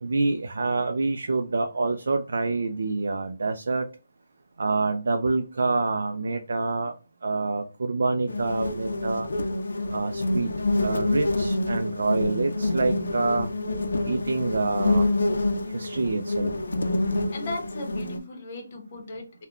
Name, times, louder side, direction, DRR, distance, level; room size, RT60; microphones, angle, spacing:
voice 1, 0.0-3.9 4.6-6.9 7.2-9.3 9.9-10.5 10.8-13.5 14.0-15.1 15.7-16.5, right 3 dB, 65° right, 0.3 m, -26 dB
sound 1, 8.3-18.2, left 2 dB, 80° left, 0.5 m, -27 dB
voice 2, 17.3-19.5, left 2 dB, 30° left, 0.8 m, -37 dB
3.5 x 2.1 x 2.3 m
hypercardioid pair, 170°, 0 cm